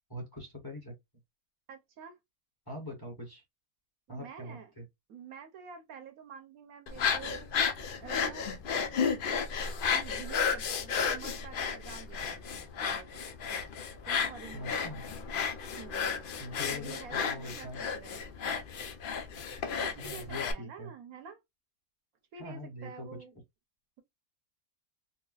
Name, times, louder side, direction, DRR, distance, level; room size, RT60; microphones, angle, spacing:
voice 1, 0.1-0.9 2.7-3.4 4.1-4.8 14.5-15.2 16.4-17.8 20.0-20.9 22.4-23.1, left 1 dB, 15° left, 1.1 m, -42 dB
voice 2, 1.7-2.2 4.1-4.7 5.1-7.5 8.0-8.5 9.9-13.2 14.1-14.9 15.8-16.1 16.7-18.2 19.8-21.4 22.3-23.3, right 7 dB, 75° right, 1.2 m, -48 dB
sound 1, 6.9-20.5, left 6 dB, 80° left, 0.4 m, -33 dB
3.9 x 2.1 x 2.3 m
omnidirectional pair, 1.5 m